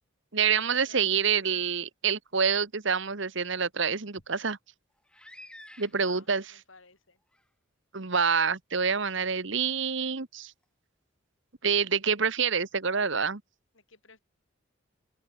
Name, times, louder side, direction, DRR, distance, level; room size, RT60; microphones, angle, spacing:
voice 1, 0.3-4.6 5.8-6.4 7.9-10.5 11.6-13.4, right 6 dB, 60° right, 1.2 m, -27 dB
voice 2, 0.9-1.7 5.8-7.2 8.9-9.7 13.7-14.2, left 3 dB, 70° left, 5.4 m, -56 dB
sound 1, 5.0-6.4 7.3-7.4 8.1-8.2, left 1 dB, 5° left, 4.1 m, -50 dB
head